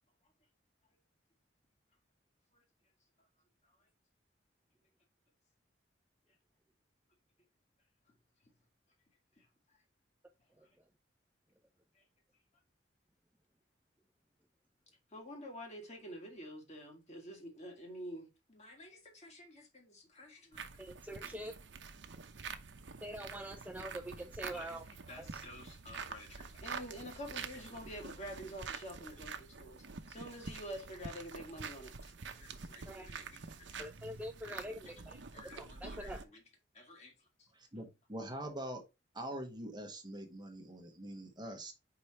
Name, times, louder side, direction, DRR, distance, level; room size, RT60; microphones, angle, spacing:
voice 1, 15.1-20.6 24.5-33.8 35.3-36.4 36.7-37.1, equal, 40° left, 2.1 m, -49 dB
sound 1, 20.5-36.2, right 5 dB, 70° right, 0.8 m, -47 dB
voice 2, 20.8-21.5 23.0-24.9 25.2-25.4 32.9-33.1 33.8-36.2, right 1 dB, 10° right, 0.6 m, -45 dB
voice 3, 37.5-38.8 39.1-41.7, right 1 dB, 25° right, 1.2 m, -44 dB
5.2 x 4.8 x 4.2 m
head